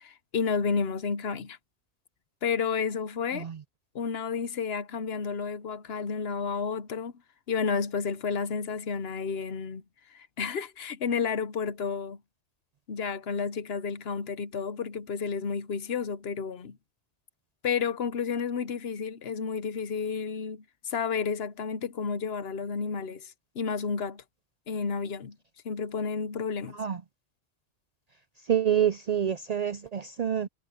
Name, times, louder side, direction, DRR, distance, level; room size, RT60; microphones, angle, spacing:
voice 1, 0.0-1.6 2.4-3.5 3.9-7.1 7.5-9.8 10.1-12.2 12.9-16.8 17.6-24.2 24.7-25.4 25.6-26.8, left 5 dB, 65° left, 1.1 m, -31 dB
voice 2, 28.5-30.5, right 9 dB, 55° right, 0.4 m, -27 dB
omnidirectional pair, 1.1 m